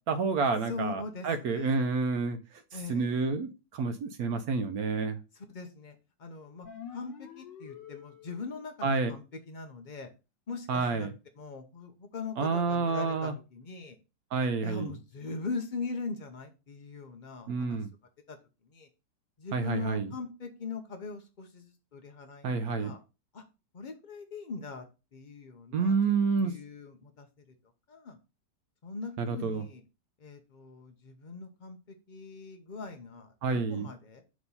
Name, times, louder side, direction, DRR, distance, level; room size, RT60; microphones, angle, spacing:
voice 1, 0.1-2.4 2.9-5.2 8.8-9.1 10.7-11.1 12.4-13.3 14.3-14.9 17.5-17.9 19.5-20.1 22.4-22.9 25.7-26.5 29.2-29.6 33.4-33.9, right 4 dB, 65° right, 9 dB, 1.0 m, -29 dB
voice 2, 0.7-1.9 2.7-3.1 5.3-10.1 10.5-11.1 11.4-14.0 14.6-17.8 18.3-18.4 18.6-18.9 19.4-23.0 23.3-23.4 23.7-24.9 25.1-26.0 26.4-27.3 27.9-28.2 28.8-29.8 30.2-34.2, left 4 dB, 65° left, 5 dB, 0.4 m, -41 dB
sound 1, 6.6-8.6, left 8 dB, 85° left, 1.7 m, -47 dB
6.2 x 3.1 x 5.4 m, 0.29 s
omnidirectional pair, 2.0 m